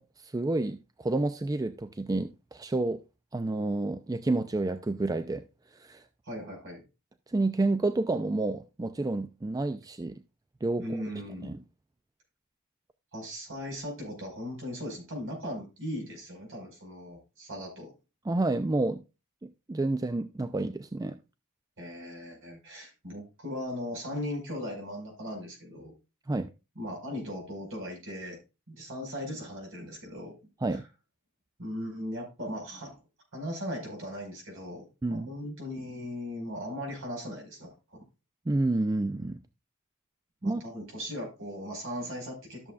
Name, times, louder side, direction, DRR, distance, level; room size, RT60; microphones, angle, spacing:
voice 1, 0.0-3.0 3.3-5.4 5.8-6.0 7.3-10.2 10.6-10.8 11.4-11.6 18.3-19.0 19.4-21.2 26.3-26.5 30.6-30.8 35.0-35.3 38.5-39.4 40.4-40.6, right 2 dB, 15° right, 0.4 m, -29 dB
voice 2, 6.2-6.8 10.8-11.5 13.1-17.9 21.8-25.9 26.8-28.4 28.7-30.3 30.7-30.8 31.6-33.0 33.3-38.0 40.4-42.7, equal, 60° right, 5.2 m, -38 dB
13.0 x 7.0 x 2.4 m
head